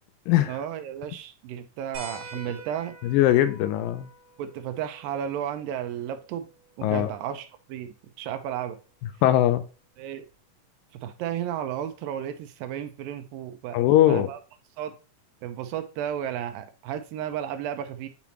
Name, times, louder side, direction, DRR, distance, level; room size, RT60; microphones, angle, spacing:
voice 1, 0.5-3.0 4.4-6.5 6.8-8.8 10.0-10.3 11.0-13.8 14.1-14.4 14.8-14.9 15.4-18.1, right 10 dB, 90° right, 8 dB, 2.4 m, -33 dB
sound 1, 1.9-7.0 8.6-8.7 10.3-10.4, right 2 dB, 50° right, 2.9 m, -47 dB
voice 2, 3.0-4.1 6.8-7.1 9.2-9.6 13.7-14.3, left 13 dB, 85° left, 12 dB, 2.2 m, -20 dB
8.6 x 4.2 x 2.9 m, 0.34 s
omnidirectional pair, 4.1 m